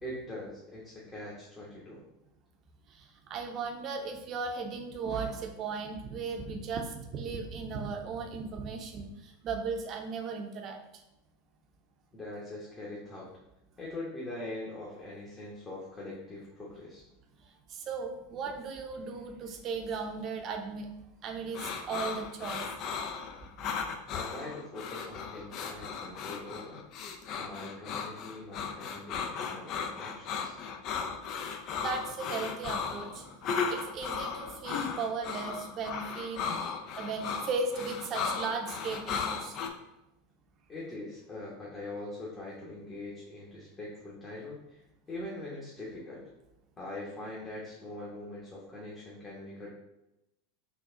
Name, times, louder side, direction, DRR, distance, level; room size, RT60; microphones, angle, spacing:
voice 1, 0.0-2.0 12.1-13.3 13.8-17.0 24.1-26.8 27.3-30.6 40.7-44.8 45.1-46.2 46.8-49.7, left 2 dB, 25° left, -6 dB, 1.1 m, -42 dB
voice 2, 2.9-10.8 17.7-20.9 21.2-22.7 31.8-33.3 33.7-36.5 37.0-39.6, right 4 dB, 40° right, 3 dB, 0.7 m, -36 dB
sound 1, 21.5-39.7, left 6 dB, 45° left, 0.4 m, -36 dB
4.0 x 2.5 x 3.7 m, 0.90 s
hypercardioid pair, 85°, 0 cm